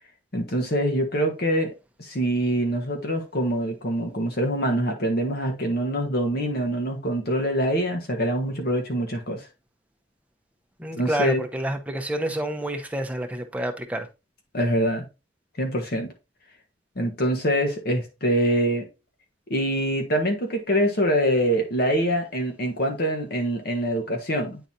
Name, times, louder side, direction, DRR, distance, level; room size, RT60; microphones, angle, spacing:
voice 1, 0.3-1.7 2.0-9.5 11.0-11.4 14.5-15.1 15.6-16.1 17.0-18.8 19.5-24.6, equal, 55° left, 1.3 m, -24 dB
voice 2, 10.8-14.1, right 1 dB, 10° right, 0.8 m, -28 dB
9.1 x 4.0 x 2.7 m
head